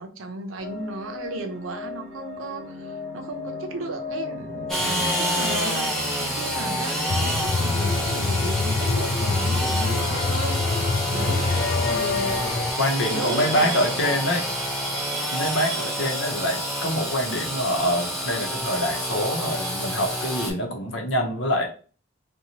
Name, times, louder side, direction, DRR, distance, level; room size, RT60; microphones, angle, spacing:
voice 1, 0.0-13.9, right 2 dB, 90° right, 5 dB, 0.6 m, -35 dB
sound 1, 0.6-18.5, left 2 dB, 65° right, 0.9 m, -39 dB
Engine / Sawing, 4.7-20.5, equal, ahead, 0.6 m, -28 dB
voice 2, 4.8-5.2 11.1-11.3 12.8-14.4 15.3-21.7, equal, 70° left, 1 dB, 0.7 m, -25 dB
sound 2, 7.1-12.7, left 3 dB, 45° left, 0.3 m, -25 dB
2.8 x 2.2 x 2.7 m, 0.39 s
head